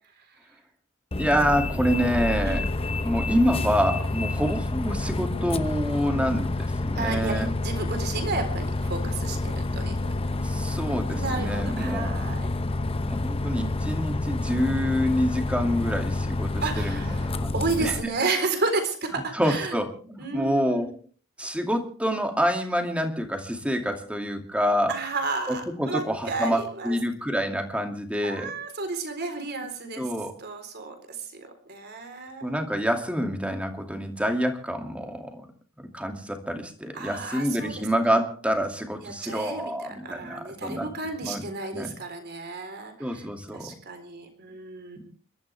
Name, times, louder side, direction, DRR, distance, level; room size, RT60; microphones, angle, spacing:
Bus, 1.1-18.0, left 2 dB, 30° left, 0.8 m, -28 dB
voice 1, 1.2-2.7 3.0-7.5 10.4-12.2 13.1-18.1 19.1-20.9 21.4-24.9 25.5-28.5 29.9-30.3 32.4-35.4 35.9-40.9 41.2-41.5 41.7-41.9 43.0-43.7, equal, 5° right, 4 dB, 2.4 m, -27 dB
voice 2, 6.9-10.1 11.1-12.5 16.6-19.8 20.2-20.9 24.9-27.0 28.2-30.1 30.4-32.5 36.9-38.2 39.0-43.3 43.5-45.1, right 3 dB, 55° right, 6 dB, 4.0 m, -32 dB
29.5 x 13.0 x 3.4 m, 0.41 s
head